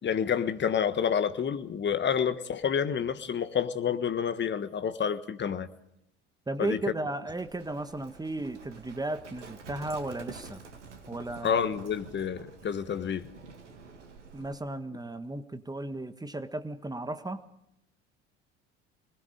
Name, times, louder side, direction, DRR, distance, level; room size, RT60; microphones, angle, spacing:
voice 1, 0.0-5.7 6.6-6.8 11.4-13.3, left 7 dB, 30° left, 1.5 m, -29 dB
voice 2, 6.5-10.6 11.1-11.7 14.3-17.4, right 2 dB, 10° right, 1.5 m, -35 dB
Livestock farm animals working animals, 7.3-14.6, right 5 dB, 80° right, 2.3 m, -49 dB
25.5 x 20.0 x 5.1 m
figure-of-eight pair, 60°, 35 cm